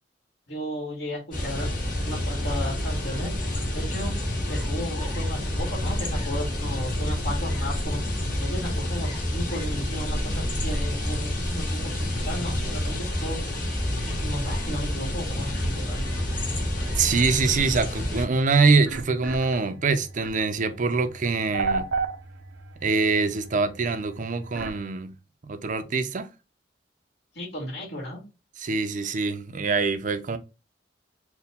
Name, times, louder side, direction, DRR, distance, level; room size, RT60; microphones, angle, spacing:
voice 1, 0.5-1.7 2.1-3.3 3.7-4.1 4.5-8.0 8.4-13.4 14.0-16.1 27.3-28.2, equal, 70° left, 1.8 m, -34 dB
sound 1, 1.3-18.2, left 1 dB, 50° left, 1.9 m, -28 dB
sound 2, 15.9-24.8, right 4 dB, 85° right, 0.6 m, -36 dB
voice 2, 17.0-21.9 22.8-25.1 25.4-26.3 28.6-30.4, right 4 dB, 45° right, 0.5 m, -24 dB
4.5 x 2.2 x 3.6 m
head